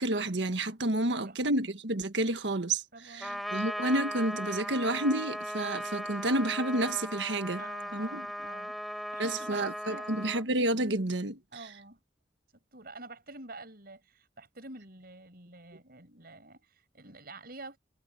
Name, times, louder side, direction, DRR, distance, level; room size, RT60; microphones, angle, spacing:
voice 1, 0.0-7.6 7.9-8.3 9.2-11.4, right 1 dB, 85° right, 1.6 m, -30 dB
voice 2, 2.9-3.5 7.6-10.2 11.5-12.0 12.7-17.8, right 2 dB, 60° right, 6.2 m, -48 dB
Trumpet, 3.2-10.4, equal, ahead, 3.9 m, -37 dB
head